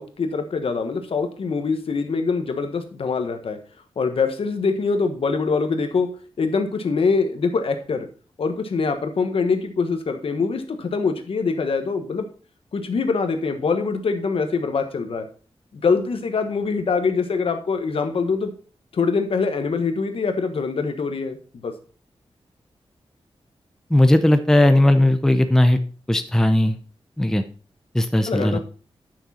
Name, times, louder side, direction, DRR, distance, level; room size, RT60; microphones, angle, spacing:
voice 1, 0.0-3.6 4.0-6.1 6.4-8.1 8.4-12.2 12.7-15.3 15.7-18.5 18.9-21.4 21.6-21.7 28.3-28.6, left 4 dB, 65° left, 7 dB, 1.3 m, -24 dB
voice 2, 23.9-25.8 26.1-26.8 27.2-27.4 27.9-28.6, left 1 dB, 5° left, 8 dB, 0.5 m, -17 dB
10.0 x 6.2 x 4.3 m, 0.38 s
wide cardioid pair, 170°, 10 cm